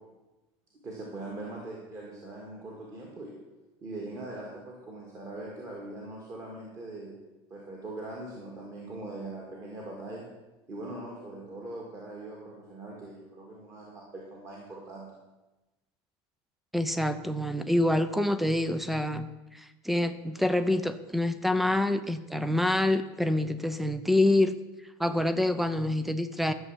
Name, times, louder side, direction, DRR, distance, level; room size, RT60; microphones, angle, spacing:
voice 1, 0.8-3.3 3.8-7.2 7.5-10.3 10.7-15.1, right 2 dB, 25° right, -2 dB, 1.8 m, -41 dB
voice 2, 16.7-24.5 25.0-26.5, left 1 dB, ahead, 12 dB, 0.4 m, -26 dB
12.5 x 7.2 x 7.2 m, 1.1 s
cardioid pair, 180°, 13 cm